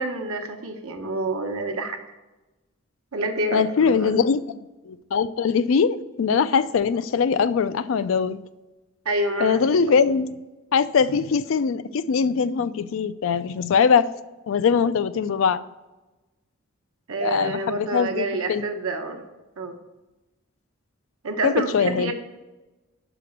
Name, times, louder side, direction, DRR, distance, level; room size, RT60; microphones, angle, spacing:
voice 1, 0.0-2.0 3.1-4.1 9.0-9.6 9.9-10.0 17.1-19.2 19.6-19.8 21.2-22.1, right 2 dB, 90° right, 5 dB, 0.9 m, -28 dB
voice 2, 3.5-4.4 4.9-8.4 9.4-10.3 10.7-14.1 14.5-15.6 17.2-18.6 21.4-22.1, left 6 dB, 65° left, 14 dB, 0.3 m, -21 dB
5.8 x 5.0 x 6.3 m, 1.1 s
head